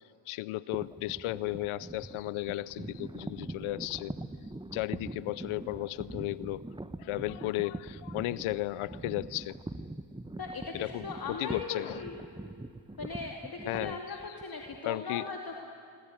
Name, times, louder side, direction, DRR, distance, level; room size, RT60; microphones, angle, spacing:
voice 1, 0.3-4.1 4.7-6.6 7.0-9.6 10.7-12.0 13.6-14.4 14.8-15.3, left 17 dB, 85° left, 19 dB, 0.7 m, -35 dB
sound 1, 0.7-14.8, right 2 dB, 10° right, 1.1 m, -43 dB
voice 2, 10.4-12.2 13.0-15.6, left 4 dB, 45° left, 2 dB, 2.6 m, -39 dB
25.0 x 24.5 x 9.0 m, 2.4 s
supercardioid pair, 55°, 49 cm